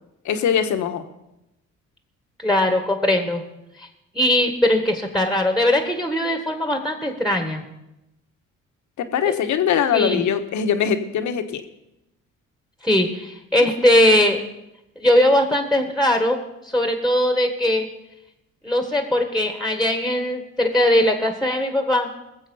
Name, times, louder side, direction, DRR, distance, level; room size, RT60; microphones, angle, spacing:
voice 1, 0.2-1.0 9.0-11.6, left 8 dB, 70° left, 7 dB, 1.3 m, -22 dB
voice 2, 2.4-3.4 3.8-3.9 4.1-7.6 9.3-9.4 9.9-10.2 12.8-14.4 15.0-16.4 16.7-17.9 18.6-22.1, left 1 dB, ahead, 5 dB, 1.6 m, -20 dB
20.0 x 7.6 x 5.5 m, 0.90 s
cardioid pair, 90°, 30 cm